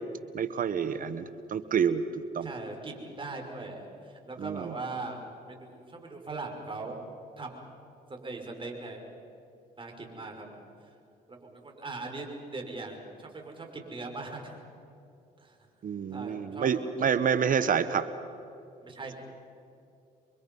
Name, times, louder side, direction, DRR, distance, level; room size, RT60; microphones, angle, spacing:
voice 1, 0.3-2.0 2.3-2.5 4.4-4.7 15.8-18.1, right 7 dB, 50° right, 12 dB, 1.2 m, -28 dB
voice 2, 2.4-5.2 5.5-7.0 7.4-7.7 8.1-9.0 9.8-10.6 11.3-12.3 12.5-14.5 15.4-15.6 16.1-16.9 18.8-19.1, right 3 dB, 30° right, 2 dB, 5.6 m, -40 dB
29.0 x 24.0 x 5.5 m, 2.7 s
supercardioid pair, 80°, 18 cm